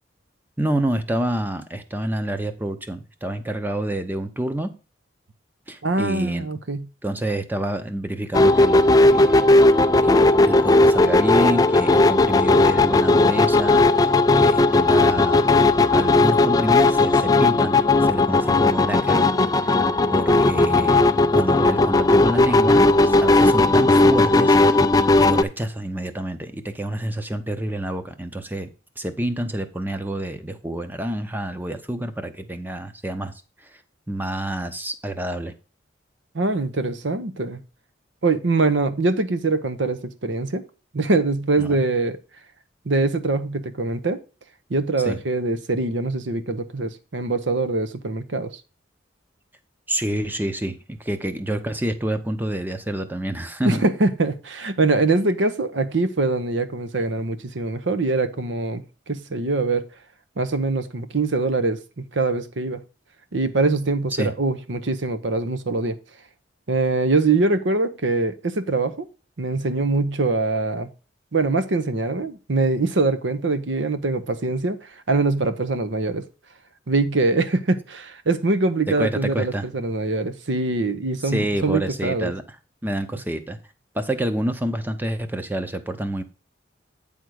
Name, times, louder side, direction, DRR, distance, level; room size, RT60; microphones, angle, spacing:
voice 1, 0.6-4.7 5.7-6.5 7.0-9.4 10.0-15.5 15.9-19.2 19.6-19.8 20.1-21.0 21.3-24.8 25.2-28.7 29.0-33.8 34.1-35.5 41.6-41.8 45.0-45.2 49.9-53.8 64.1-64.3 78.9-79.7 81.2-82.6 82.8-83.6 83.9-86.2, right 1 dB, 10° right, 0.7 m, -28 dB
voice 2, 5.8-6.9 36.3-37.6 38.2-40.6 40.9-42.2 42.9-44.2 44.7-48.6 53.6-59.8 60.4-62.8 63.3-66.0 66.7-69.1 69.4-70.9 71.3-74.8 75.1-76.3 76.9-82.3, right 3 dB, 80° right, 0.8 m, -23 dB
sound 1, 8.3-25.4, left 2 dB, 20° left, 0.3 m, -16 dB
9.1 x 3.6 x 6.3 m
head